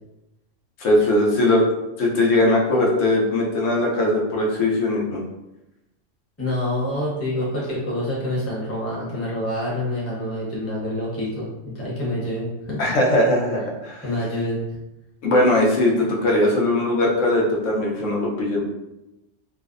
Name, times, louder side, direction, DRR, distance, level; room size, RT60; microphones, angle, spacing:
voice 1, 0.8-1.6 2.0-5.2 12.8-14.0 15.2-18.6, left 1 dB, 90° left, -2 dB, 1.0 m, -20 dB
voice 2, 6.4-12.8 14.0-14.6, left 1 dB, 15° left, -6 dB, 0.6 m, -27 dB
2.6 x 2.0 x 2.4 m, 0.94 s
omnidirectional pair, 1.3 m